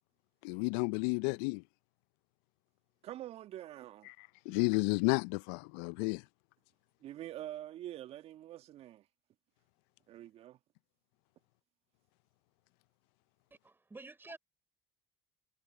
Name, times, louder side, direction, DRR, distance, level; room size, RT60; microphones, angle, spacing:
voice 1, 0.4-1.6 4.2-6.2, left 31 dB, 65° left, 0.7 m, -32 dB
voice 2, 3.0-4.1 7.0-9.1 10.1-10.6, right 13 dB, 50° right, 1.6 m, -45 dB
voice 3, 13.5-14.4, right 3 dB, 15° right, 4.2 m, -50 dB
hypercardioid pair, 65°, 13 cm